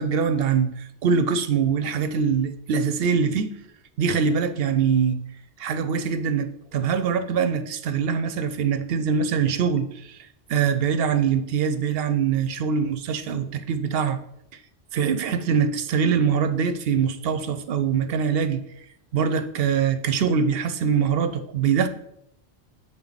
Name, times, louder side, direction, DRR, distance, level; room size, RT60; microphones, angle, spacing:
voice 1, 0.0-3.5 4.0-5.2 5.6-10.2 10.5-14.2 14.9-18.6 19.1-21.9, right 6 dB, 65° right, 10 dB, 0.7 m, -23 dB
7.3 x 3.8 x 4.0 m, 0.74 s
omnidirectional pair, 1.2 m